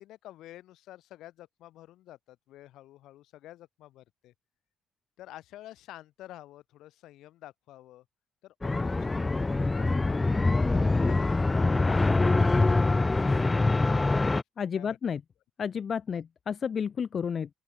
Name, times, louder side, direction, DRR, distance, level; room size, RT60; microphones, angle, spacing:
voice 1, 0.0-4.3 5.2-8.0 8.4-10.2 10.4-13.8 14.7-15.0 16.1-16.2, left 14 dB, 85° left, 5.5 m, -50 dB
sound 1, 8.6-14.4, left 3 dB, 20° left, 0.6 m, -24 dB
voice 2, 14.6-15.2 15.6-17.5, left 7 dB, 50° left, 2.6 m, -31 dB
open air
cardioid pair, 90°, 0 cm